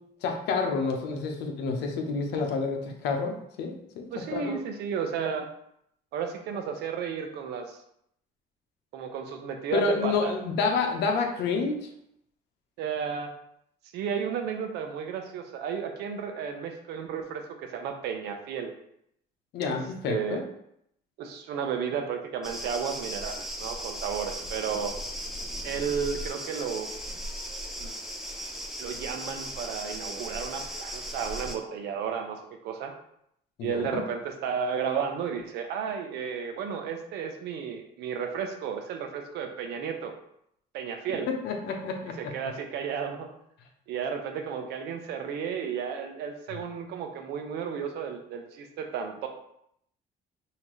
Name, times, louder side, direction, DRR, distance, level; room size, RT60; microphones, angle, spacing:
voice 1, 0.2-4.6 9.7-11.9 19.5-20.4 33.6-34.0 41.3-42.3, left 4 dB, 85° left, 3 dB, 0.9 m, -29 dB
voice 2, 4.1-5.5 6.1-7.8 8.9-10.3 12.8-13.3 13.9-18.7 19.6-19.7 20.1-20.4 21.2-24.9 25.6-26.9 27.8-28.0 28.8-32.9 33.6-40.1 40.7-41.3 42.2-43.3 43.9-49.3, right 7 dB, 80° right, 5 dB, 0.8 m, -33 dB
sound 1, 22.4-31.6, equal, ahead, 0.7 m, -37 dB
5.6 x 2.8 x 3.1 m, 0.73 s
cardioid pair, 110°, 17 cm